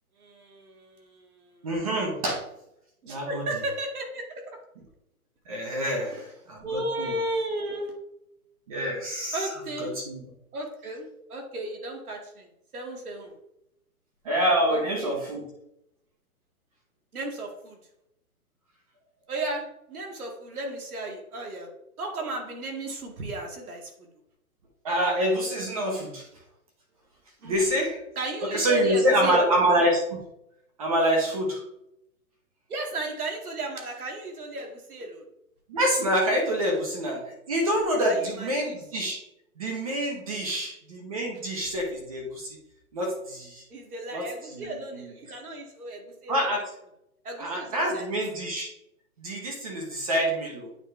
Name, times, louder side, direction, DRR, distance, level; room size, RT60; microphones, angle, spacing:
voice 1, 0.2-1.6 3.0-4.6 6.6-8.0 9.3-10.0 10.5-13.3 14.7-15.2 17.1-17.8 19.3-21.7 22.0-24.1 27.4-27.6 28.2-29.6 32.7-35.2 38.0-38.8 40.5-40.6 43.7-46.3 47.2-48.0, right 2 dB, 75° right, 2 dB, 2.2 m, -34 dB
voice 2, 1.6-2.4 3.1-3.4 5.5-7.1 8.7-9.5 9.8-10.2 14.2-15.4 24.8-26.3 27.4-28.0 28.4-30.2 30.8-31.6 35.7-39.2 39.6-42.6 42.9-43.6 44.1-44.2 44.5-45.1 46.3-46.6 47.4-48.7 49.2-50.7, equal, 25° right, 1 dB, 0.9 m, -26 dB
8.9 x 4.1 x 3.3 m, 0.81 s
hypercardioid pair, 165°, 44 cm